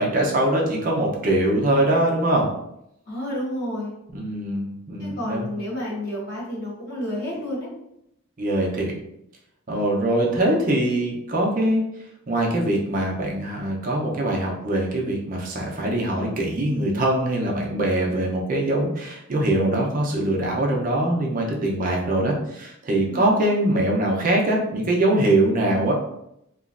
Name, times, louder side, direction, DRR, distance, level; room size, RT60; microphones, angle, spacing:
voice 1, 0.0-2.5 4.1-5.5 8.4-8.9 9.7-11.8 12.3-25.9, right 1 dB, 40° right, -1 dB, 0.6 m, -22 dB
voice 2, 3.1-3.9 5.0-7.7 23.1-23.3, left 1 dB, 50° left, -5 dB, 1.1 m, -30 dB
3.0 x 2.4 x 2.4 m, 0.80 s
head